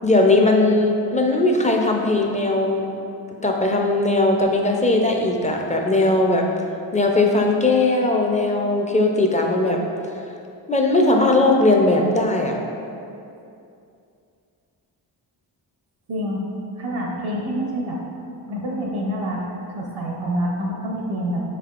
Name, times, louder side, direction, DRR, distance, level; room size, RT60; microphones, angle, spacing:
voice 1, 0.0-2.9 3.4-6.5 6.9-9.8 10.7-12.6, left 2 dB, 15° left, 1 dB, 0.4 m, -19 dB
voice 2, 16.1-16.4 16.8-18.0 18.5-21.4, equal, 85° right, -2 dB, 0.9 m, -27 dB
5.2 x 3.4 x 2.4 m, 2.6 s
cardioid pair, 50°, 47 cm